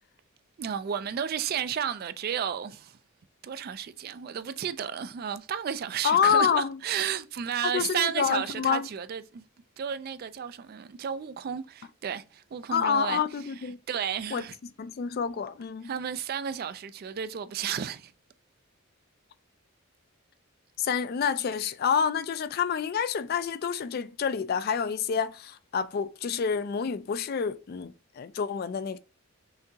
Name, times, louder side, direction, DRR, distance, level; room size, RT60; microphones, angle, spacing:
voice 1, 0.6-3.0 3.4-9.5 9.8-13.2 13.9-14.6 15.8-18.1, right 8 dB, 45° right, 0.3 m, -32 dB
voice 2, 6.0-6.8 7.7-8.9 12.7-13.8 14.3-14.4 14.8-15.9 20.8-29.0, left 7 dB, 45° left, 0.3 m, -28 dB
5.7 x 2.8 x 2.7 m
head